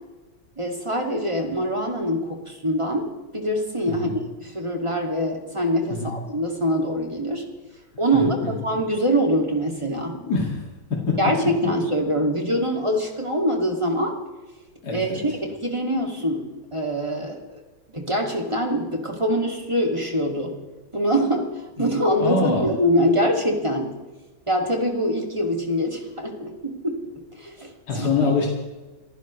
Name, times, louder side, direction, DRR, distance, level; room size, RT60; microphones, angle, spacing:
voice 1, 0.6-3.1 3.3-7.4 8.0-8.4 8.6-10.2 11.2-14.2 14.9-17.6 17.9-20.6 20.9-21.5 21.8-23.9 24.5-27.0 27.4-28.3, equal, 15° right, 1 dB, 2.3 m, -24 dB
voice 2, 8.1-8.6 10.2-11.4 14.8-15.2 21.8-21.9 22.2-22.7 27.9-28.5, left 4 dB, 55° left, -2 dB, 2.8 m, -25 dB
28.0 x 15.0 x 3.2 m, 1.2 s
omnidirectional pair, 2.1 m